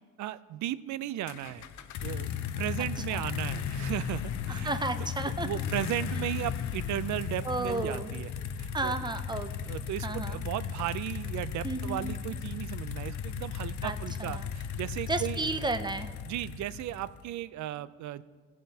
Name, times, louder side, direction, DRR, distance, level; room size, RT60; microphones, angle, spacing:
voice 1, 0.2-1.7 2.0-2.3 2.6-4.7 5.4-8.3 8.6-9.0 9.7-15.4 16.2-18.2, right 13 dB, 70° right, 16 dB, 0.4 m, -35 dB
sound 1, 1.3-17.2, left 8 dB, 70° left, 0.6 m, -36 dB
voice 2, 2.8-3.3 4.5-5.5 7.4-8.1 8.7-9.7 10.0-10.4 11.6-12.2 13.8-14.5 15.1-16.1, right 3 dB, 15° right, 10 dB, 0.5 m, -33 dB
15.0 x 7.4 x 2.8 m, 1.5 s
cardioid pair, 90°, 30 cm